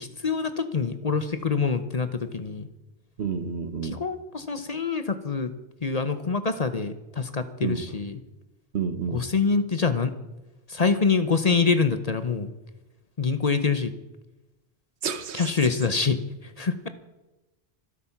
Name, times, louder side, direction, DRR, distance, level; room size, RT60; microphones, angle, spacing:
voice 1, 0.0-2.7 3.8-5.5 5.8-8.2 9.1-10.1 10.7-12.5 13.2-13.9 15.3-16.2 16.6-16.9, left 5 dB, 40° left, 11 dB, 0.9 m, -25 dB
voice 2, 3.2-4.0 7.6-7.8 8.7-9.3 15.0-15.7, right 6 dB, 75° right, 12 dB, 1.3 m, -30 dB
25.0 x 8.4 x 5.8 m, 1.0 s
omnidirectional pair, 1.1 m